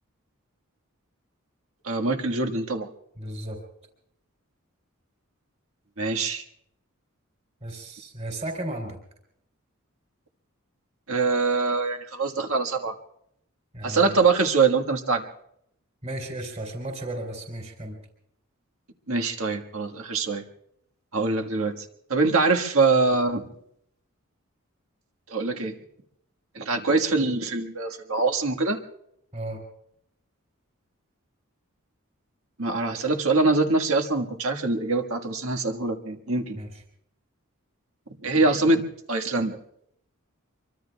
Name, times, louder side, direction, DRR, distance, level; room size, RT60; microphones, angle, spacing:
voice 1, 1.8-2.9 6.0-6.4 11.1-13.0 13.8-15.3 19.1-20.4 21.1-21.9 22.1-23.4 25.3-25.7 26.6-28.8 32.6-36.6 38.2-38.8 39.1-39.6, right 3 dB, 75° right, 5 dB, 1.6 m, -24 dB
voice 2, 3.2-3.6 7.6-9.0 13.7-14.1 16.0-18.0 29.3-29.6 36.5-36.8, right 1 dB, 30° right, 4 dB, 3.2 m, -34 dB
25.5 x 24.0 x 2.3 m, 0.74 s
head